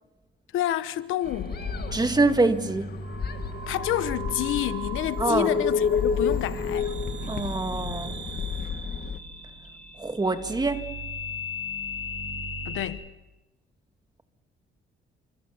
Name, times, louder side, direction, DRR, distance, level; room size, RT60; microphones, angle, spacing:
voice 1, 0.5-1.6 3.7-6.9 12.6-13.0, left 13 dB, 85° left, 1.2 m, -29 dB
sound 1, 1.2-9.2, left 6 dB, 50° left, 1.8 m, -30 dB
sound 2, 1.2-12.9, right 1 dB, 40° right, 7.7 m, -37 dB
voice 2, 1.9-2.9 5.2-5.5 7.3-8.1 10.0-10.8, right 3 dB, 20° right, 2.2 m, -25 dB
29.5 x 26.0 x 7.2 m
cardioid pair, 90°, 20 cm